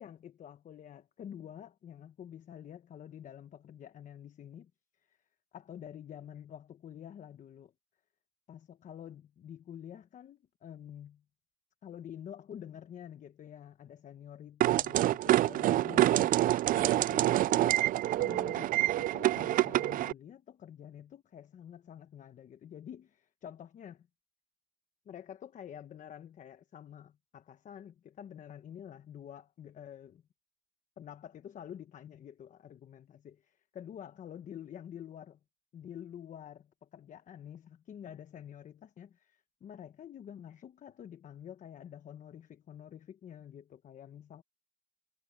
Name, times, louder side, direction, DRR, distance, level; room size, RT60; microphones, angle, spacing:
voice 1, 0.0-4.7 5.1-5.2 5.5-7.7 8.5-11.2 11.8-17.8 18.1-24.1 25.1-30.2 31.0-35.4 35.7-44.4, left 9 dB, 50° left, 1.1 m, -48 dB
sound 1, 14.6-20.1, right 14 dB, 55° right, 0.4 m, -27 dB
cardioid pair, 110°, 17 cm